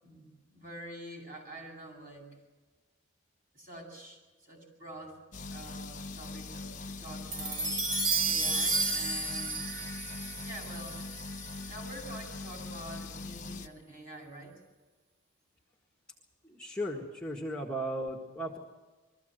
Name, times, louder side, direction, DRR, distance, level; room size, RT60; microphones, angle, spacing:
voice 1, 0.0-2.3 3.5-5.2 5.5-7.7 8.2-9.6 10.4-11.0 11.7-14.5, right 1 dB, 45° right, 0 dB, 7.7 m, -46 dB
sound 1, 5.3-13.7, left 3 dB, 40° left, 0.9 m, -42 dB
sound 2, 7.3-11.8, right 3 dB, 70° right, 3.0 m, -32 dB
voice 2, 16.5-18.6, equal, 5° left, -3 dB, 1.7 m, -36 dB
22.5 x 14.5 x 7.9 m, 1.2 s
head